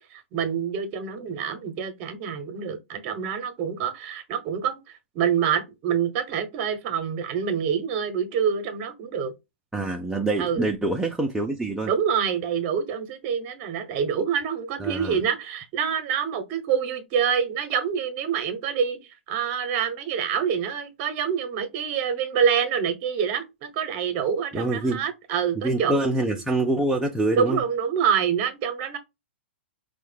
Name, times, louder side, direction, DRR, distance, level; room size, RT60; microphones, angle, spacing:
voice 1, 0.0-4.8 5.1-9.3 10.4-10.7 11.8-26.0 27.3-29.0, right 7 dB, 40° right, 0.7 m, -26 dB
voice 2, 9.7-11.9 14.8-15.2 24.5-25.0 25.6-27.6, right 2 dB, 5° right, 0.3 m, -25 dB
4.5 x 2.1 x 3.2 m
hypercardioid pair, 130°, 6 cm